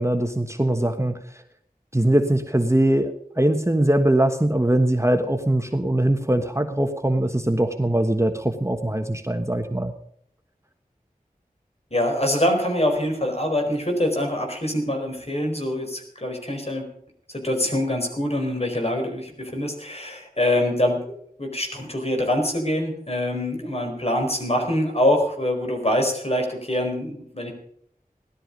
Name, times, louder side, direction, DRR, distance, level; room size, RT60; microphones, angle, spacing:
voice 1, 0.0-1.4 1.9-9.9, right 1 dB, 20° right, 7 dB, 1.2 m, -22 dB
voice 2, 11.9-16.9 17.3-27.5, left 1 dB, 40° left, 3 dB, 4.5 m, -24 dB
17.0 x 12.5 x 5.3 m, 0.67 s
wide cardioid pair, 45°, 15 cm